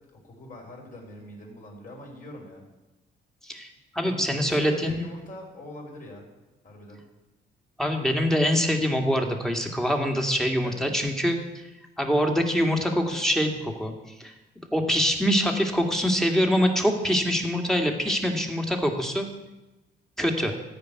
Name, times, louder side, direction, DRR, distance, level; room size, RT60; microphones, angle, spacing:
voice 1, 0.0-2.6 4.0-6.3 6.6-7.0 10.6-10.9, left 1 dB, 45° left, -1 dB, 4.9 m, -43 dB
voice 2, 3.4-5.0 7.8-11.6 12.0-13.9 14.2-14.3 14.7-19.3 20.2-20.5, equal, ahead, 3 dB, 2.1 m, -24 dB
15.0 x 5.3 x 9.5 m, 1.0 s
cardioid pair, 90°, 20 cm